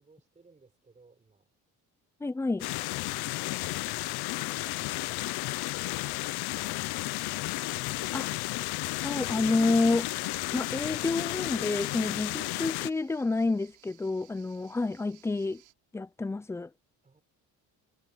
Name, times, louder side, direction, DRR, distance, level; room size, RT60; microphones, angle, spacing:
voice 1, 0.0-1.5 2.9-6.0 6.4-7.3 14.7-14.8 17.0-17.2, right 4 dB, 20° right, 6.0 m, -63 dB
voice 2, 2.2-2.7 8.1-8.3 9.0-10.1 10.5-15.6 15.9-16.7, left 3 dB, 5° left, 0.6 m, -29 dB
sound 1, 2.6-12.9, left 21 dB, 90° left, 0.6 m, -33 dB
sound 2, 4.6-12.6, left 11 dB, 55° left, 4.2 m, -61 dB
sound 3, 9.1-15.7, right 15 dB, 80° right, 4.1 m, -60 dB
cardioid pair, 150°, 38 cm